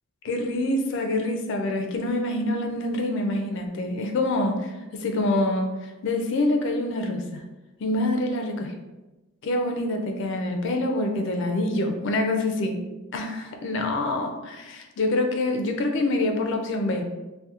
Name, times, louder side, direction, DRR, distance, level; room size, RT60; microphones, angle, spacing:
voice 1, 0.2-5.7 6.0-7.4 7.8-8.7 9.4-12.8 13.1-17.0, left 2 dB, 55° left, 4 dB, 0.3 m, -26 dB
2.7 x 2.1 x 2.4 m, 1.1 s
head